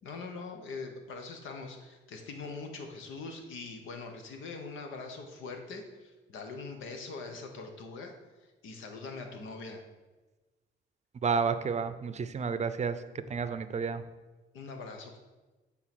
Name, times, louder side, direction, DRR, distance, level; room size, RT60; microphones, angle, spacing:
voice 1, 0.0-8.1 8.6-9.8 14.5-15.2, left 4 dB, 80° left, 4 dB, 1.1 m, -42 dB
voice 2, 11.2-13.0 13.3-14.0, right 5 dB, 35° right, 11 dB, 0.6 m, -31 dB
8.8 x 4.0 x 6.0 m, 1.2 s
cardioid pair, 90°, 20 cm